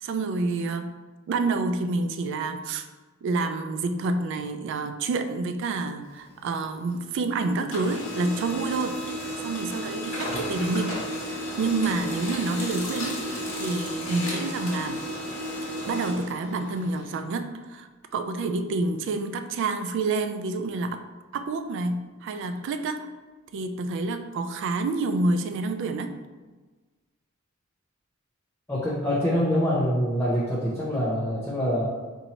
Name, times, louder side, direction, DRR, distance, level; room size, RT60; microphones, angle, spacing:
voice 1, 0.0-0.9 1.3-2.9 3.2-9.0 9.4-11.0 11.2-15.0 15.9-21.0 21.3-23.1 23.5-26.1, right 3 dB, 60° right, 8 dB, 0.3 m, -28 dB
Printer, 6.0-7.3 7.6-17.1, equal, 85° left, 1.0 m, -33 dB
voice 2, 28.7-31.9, equal, 10° left, -7 dB, 0.5 m, -25 dB
4.2 x 2.6 x 2.8 m, 1.3 s
head